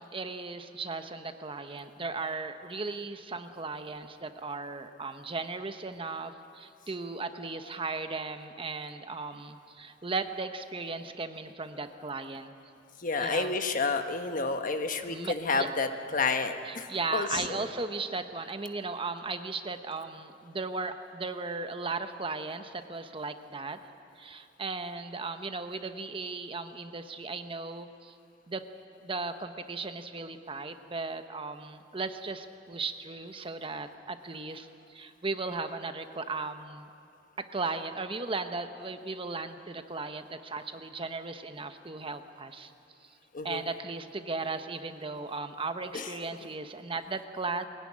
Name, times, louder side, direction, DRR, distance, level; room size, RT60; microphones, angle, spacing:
voice 1, 0.0-12.5 13.2-13.6 15.1-15.7 16.6-23.8 24.2-28.1 28.5-28.6 29.0-36.9 37.4-42.7 43.4-47.7, right 3 dB, 30° right, 8 dB, 1.0 m, -36 dB
voice 2, 13.0-17.5 43.3-43.6 45.9-46.1, left 4 dB, 50° left, 7 dB, 1.3 m, -30 dB
23.0 x 17.0 x 9.9 m, 2.5 s
head